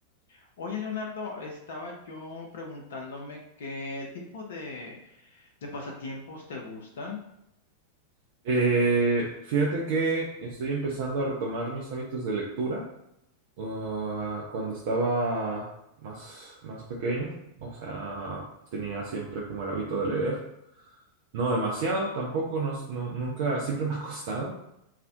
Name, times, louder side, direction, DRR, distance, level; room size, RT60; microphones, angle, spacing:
voice 1, 0.3-7.2, left 3 dB, 60° left, 0 dB, 0.4 m, -38 dB
voice 2, 8.4-12.8 13.6-15.7 16.0-17.3 17.6-18.5 18.7-20.4 21.3-24.5, right 3 dB, 50° right, -3 dB, 0.4 m, -29 dB
2.4 x 2.0 x 2.6 m, 0.81 s
figure-of-eight pair, 90°, 0 cm